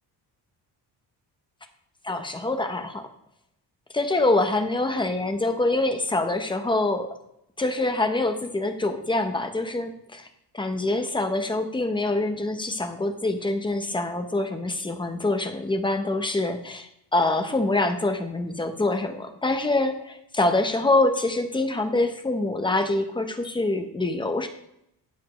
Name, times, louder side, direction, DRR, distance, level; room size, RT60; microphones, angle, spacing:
voice 1, 2.0-3.0 3.9-7.1 7.6-10.3 10.5-24.5, left 2 dB, 10° left, 6 dB, 0.9 m, -25 dB
12.5 x 8.5 x 3.2 m, 0.79 s
cardioid pair, 170°, 42 cm